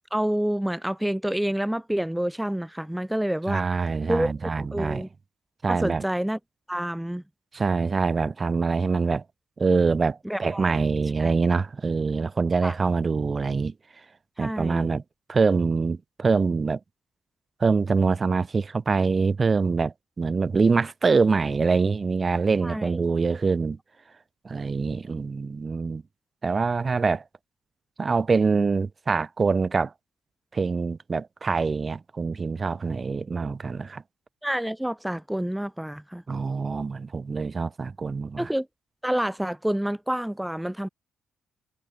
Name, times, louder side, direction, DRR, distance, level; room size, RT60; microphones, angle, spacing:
voice 1, 0.1-3.6 4.1-5.1 5.7-6.4 6.7-7.2 10.2-10.7 11.2-11.3 12.6-12.7 14.4-15.0 22.6-23.0 34.4-36.2 38.4-38.7 39.0-40.9, right 1 dB, 5° right, 2.8 m, -28 dB
voice 2, 3.5-5.0 5.6-6.0 7.5-9.2 9.6-13.7 14.4-15.0 15.3-16.8 17.6-23.8 24.4-26.0 26.4-27.2 28.0-29.9 30.5-34.0 36.3-38.5, right 4 dB, 30° right, 4.0 m, -24 dB
cardioid pair, 90°, 0 cm